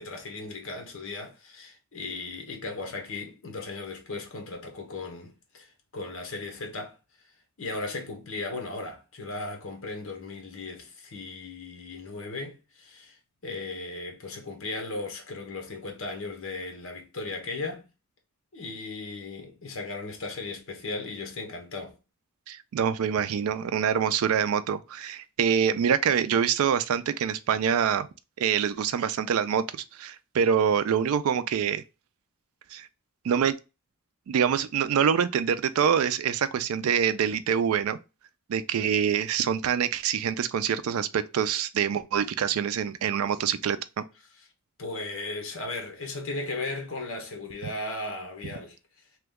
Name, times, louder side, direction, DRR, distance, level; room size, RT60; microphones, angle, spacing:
voice 1, 0.0-7.0 7.6-13.2 13.4-17.9 18.5-21.9 44.8-48.8, left 3 dB, 65° left, 0.9 m, -36 dB
voice 2, 22.5-28.1 28.4-31.8 32.7-32.9 33.2-33.5 34.3-38.0 38.5-44.0, right 8 dB, 75° right, 0.3 m, -25 dB
2.9 x 2.2 x 3.4 m
head